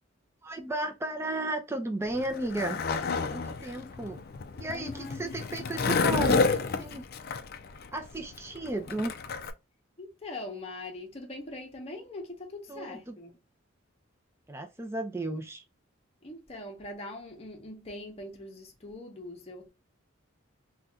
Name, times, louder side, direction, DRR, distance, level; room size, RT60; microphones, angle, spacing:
voice 1, 0.4-2.8 3.3-4.2 4.6-7.1 7.9-9.1 12.7-13.2 14.5-15.6, right 2 dB, 10° right, 0.5 m, -34 dB
Skateboard, 2.0-9.5, left 4 dB, 45° left, 0.4 m, -30 dB
voice 2, 4.7-5.4 10.0-13.3 16.2-19.7, left 2 dB, 30° left, 0.8 m, -42 dB
2.7 x 2.3 x 3.5 m
head